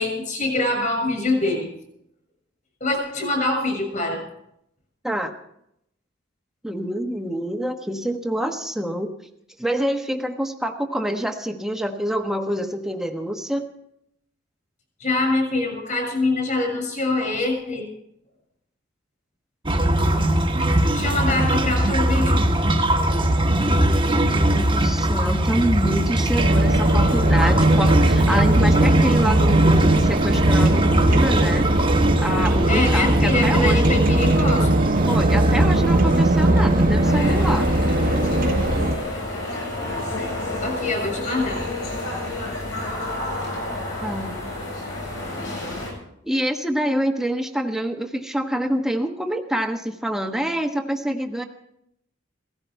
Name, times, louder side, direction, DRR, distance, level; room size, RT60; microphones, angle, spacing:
voice 1, 0.0-1.7 2.8-4.2 15.0-17.9 20.9-22.4 32.7-34.8 40.6-41.6, left 2 dB, 40° left, 3 dB, 6.9 m, -24 dB
voice 2, 6.6-9.1 9.6-13.7 23.6-31.7 32.2-33.9 35.1-37.7 44.0-44.4 46.2-51.5, equal, 5° right, 4 dB, 1.2 m, -26 dB
sound 1, 19.7-38.8, right 1 dB, 25° right, 1.3 m, -21 dB
sound 2, 26.4-39.0, right 1 dB, 45° right, 1.1 m, -20 dB
sound 3, 37.0-45.9, left 2 dB, 70° left, 7.5 m, -30 dB
17.0 x 15.5 x 4.6 m, 0.76 s
head